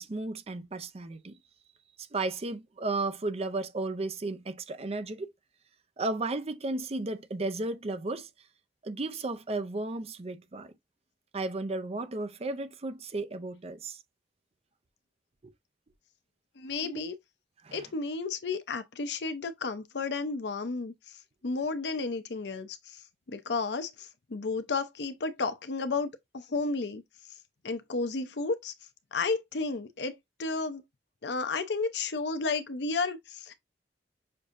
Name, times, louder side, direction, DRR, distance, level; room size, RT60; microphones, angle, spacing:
voice 1, 0.0-1.4 2.0-5.3 6.0-8.3 8.8-10.7 11.3-14.0 15.4-15.5 16.8-17.0 17.6-17.8, right 2 dB, 35° right, 0.5 m, -34 dB
voice 2, 16.6-17.1 17.7-20.9 21.4-23.0 23.3-26.1 26.3-27.0 27.6-28.7 29.1-30.8 31.2-33.5, left 4 dB, 70° left, 0.7 m, -32 dB
6.5 x 2.7 x 2.5 m
head